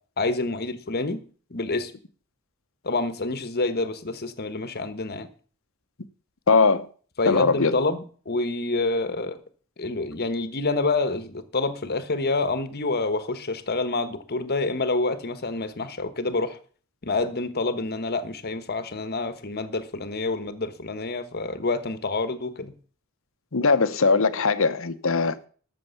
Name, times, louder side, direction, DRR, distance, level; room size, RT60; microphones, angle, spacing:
voice 1, 0.2-1.2 1.5-1.9 2.8-5.3 7.2-9.4 9.8-16.6 17.0-22.7, left 3 dB, 50° left, 1.2 m, -27 dB
voice 2, 6.5-6.9 7.3-7.8 23.5-25.5, left 4 dB, 65° left, 0.9 m, -20 dB
13.5 x 6.8 x 7.0 m
head